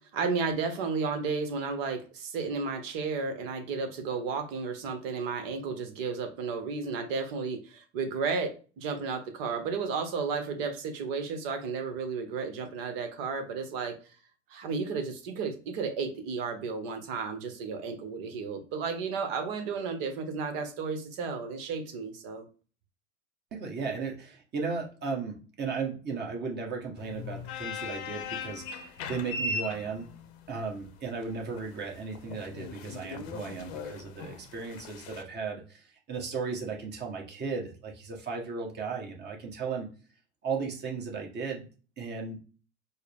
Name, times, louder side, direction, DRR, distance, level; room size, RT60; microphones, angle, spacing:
voice 1, 0.1-13.9 14.5-22.4, right 5 dB, 50° right, 6 dB, 1.2 m, -33 dB
voice 2, 23.5-30.1 30.5-39.9 40.4-41.6 42.0-42.4, right 5 dB, 25° right, 1 dB, 1.4 m, -35 dB
sound 1, 27.0-35.2, left 3 dB, 55° left, 0.8 m, -39 dB
4.5 x 2.2 x 3.5 m, 0.36 s
hypercardioid pair, 95°, 37 cm